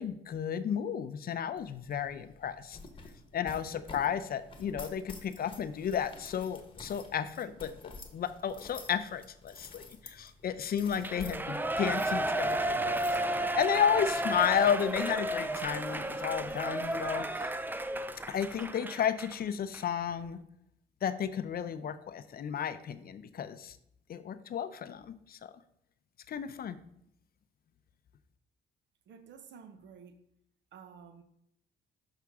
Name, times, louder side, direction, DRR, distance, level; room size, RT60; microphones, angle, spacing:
voice 1, 0.0-2.8 3.3-17.5 18.3-20.4 21.0-23.8 24.1-25.5 26.3-26.8, left 8 dB, 50° left, 11 dB, 0.5 m, -33 dB
sound 1, 1.6-18.7, left 2 dB, 25° left, 1.1 m, -51 dB
Shout / Cheering, 11.0-19.3 19.7-19.8, right 1 dB, 10° right, 0.4 m, -33 dB
voice 2, 29.1-30.2 30.7-31.2, right 6 dB, 65° right, 9 dB, 0.8 m, -51 dB
6.1 x 5.7 x 3.5 m, 0.74 s
cardioid pair, 90°, 20 cm